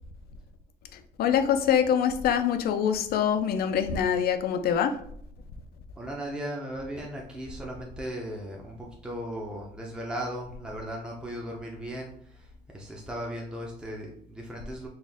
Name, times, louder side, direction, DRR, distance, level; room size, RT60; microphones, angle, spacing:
voice 1, 0.9-5.0, left 8 dB, 65° left, 8 dB, 0.5 m, -25 dB
voice 2, 6.0-14.9, equal, 5° right, -2 dB, 0.7 m, -37 dB
4.3 x 2.4 x 3.5 m, 0.64 s
cardioid pair, 110°, 17 cm